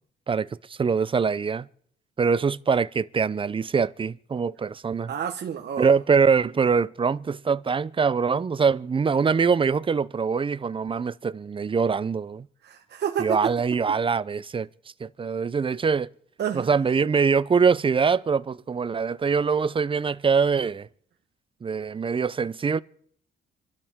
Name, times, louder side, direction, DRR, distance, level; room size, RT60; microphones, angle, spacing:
voice 1, 0.3-1.7 2.2-5.1 5.8-12.5 13.2-14.7 15.0-16.1 16.5-20.9 21.6-22.8, right 5 dB, 25° right, 0.5 m, -23 dB
voice 2, 5.1-5.9 12.6-13.5 16.4-16.7, right 8 dB, 60° right, 1.3 m, -29 dB
27.5 x 12.0 x 3.6 m
cardioid pair, 90°, 20 cm